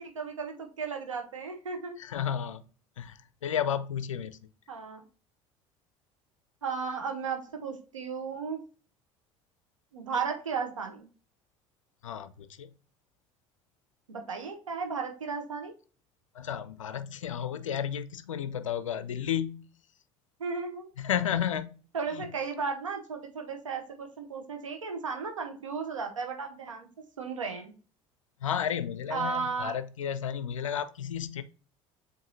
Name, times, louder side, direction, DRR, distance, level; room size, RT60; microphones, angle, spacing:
voice 1, 0.0-2.0 4.7-5.0 6.6-8.6 9.9-11.1 14.1-15.7 20.4-20.9 21.9-26.9 27.2-27.7 29.1-29.8, right 5 dB, 85° right, 0.7 m, -34 dB
voice 2, 2.0-2.6 3.0-4.4 12.0-12.7 16.3-19.7 21.0-21.8 22.1-22.3 28.4-31.4, left 9 dB, 80° left, 0.4 m, -32 dB
7.4 x 2.5 x 2.7 m
figure-of-eight pair, 60°, 16 cm